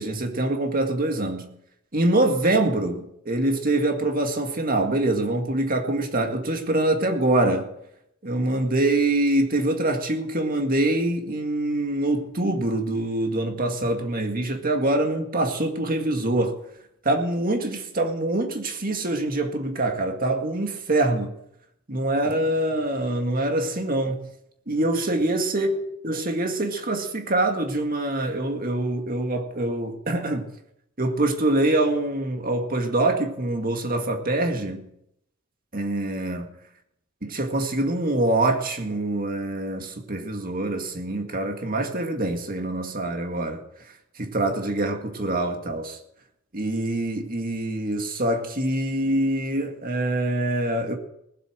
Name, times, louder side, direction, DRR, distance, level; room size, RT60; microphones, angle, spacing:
voice 1, 0.0-1.5 1.9-7.7 8.2-16.6 17.0-21.3 21.9-24.2 24.7-25.8 26.0-30.5 31.0-34.9 35.7-36.5 37.2-43.6 44.2-46.0 46.5-51.0, right 1 dB, 45° right, 2.0 m, -24 dB
19.5 x 7.9 x 6.4 m
head